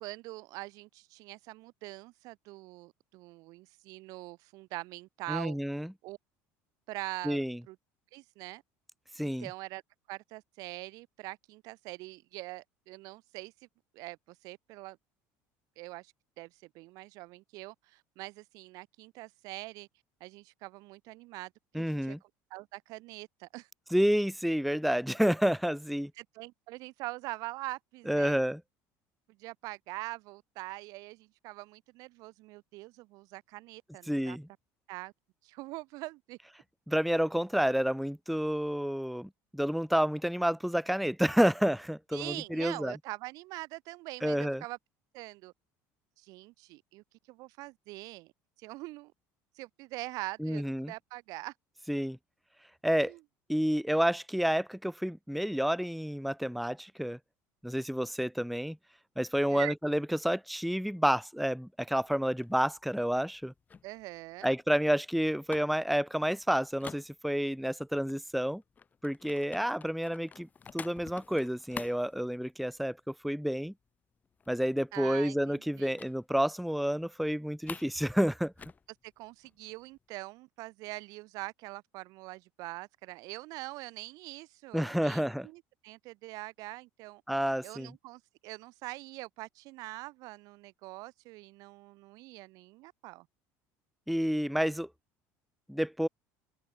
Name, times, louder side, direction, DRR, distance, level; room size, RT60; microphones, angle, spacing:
voice 1, 0.0-5.6 6.0-6.2 6.9-7.8 8.1-8.6 9.2-9.8 10.1-13.5 13.9-15.0 15.8-19.9 20.2-23.7 26.2-28.4 29.4-34.4 34.9-35.1 35.4-36.4 42.1-44.8 45.1-45.5 46.2-48.3 48.6-49.1 49.5-51.5 53.0-53.2 59.5-59.7 63.8-64.5 74.9-76.0 79.0-87.2 87.6-93.3, right 21 dB, 65° right, 0.8 m, -43 dB
voice 2, 5.3-5.9 7.2-7.6 9.2-9.5 21.7-22.2 23.9-26.1 28.1-28.6 34.1-34.4 36.9-43.0 44.2-44.6 50.4-50.9 51.9-52.2 52.8-53.1 53.5-57.2 57.6-58.8 59.2-63.5 64.4-68.6 69.0-70.5 70.7-73.7 74.5-78.5 84.7-85.5 87.3-87.9 94.1-94.9 95.7-96.1, equal, ahead, 0.4 m, -29 dB
sound 1, 62.0-67.7 68.1-73.0 73.3-73.5 73.8-73.9 74.2-75.0 76.0-76.2 76.5-76.7 77.0-78.0 78.3-80.0, left 6 dB, 25° left, 7.1 m, -49 dB
open air
cardioid pair, 130°, 7 cm